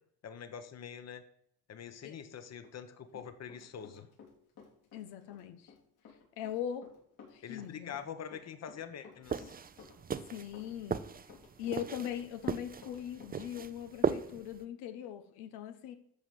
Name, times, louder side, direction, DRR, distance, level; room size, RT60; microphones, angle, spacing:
voice 1, 0.2-1.2 1.7-4.1 7.4-9.5, left 8 dB, 40° left, 9 dB, 1.3 m, -45 dB
Run, 2.6-4.3 4.6-13.4, left 6 dB, 70° left, 4.5 m, -55 dB
voice 2, 4.9-5.7 6.4-6.9 7.3-8.0 10.3-11.0 11.6-15.9, left 10 dB, 90° left, 8 dB, 1.2 m, -40 dB
sound 1, 9.2-14.6, right 6 dB, 25° right, 0.6 m, -37 dB
12.0 x 5.0 x 7.6 m, 0.69 s
cardioid pair, 100°, 38 cm